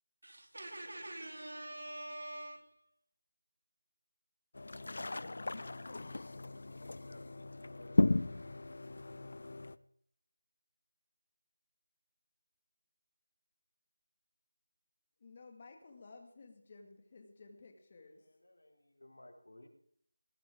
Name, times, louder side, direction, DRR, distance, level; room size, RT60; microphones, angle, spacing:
voice 1, 0.2-2.8, right 1 dB, 70° right, 2 dB, 3.9 m, -45 dB
sound 1, 4.5-9.8, left 2 dB, 50° left, 0.6 m, -35 dB
voice 2, 6.5-8.2 18.2-19.7, left 1 dB, 85° left, -2 dB, 5.5 m, -59 dB
voice 3, 15.2-18.2, left 3 dB, 25° left, 4 dB, 2.2 m, -55 dB
19.5 x 13.5 x 3.8 m, 0.67 s
figure-of-eight pair, 175°, 0 cm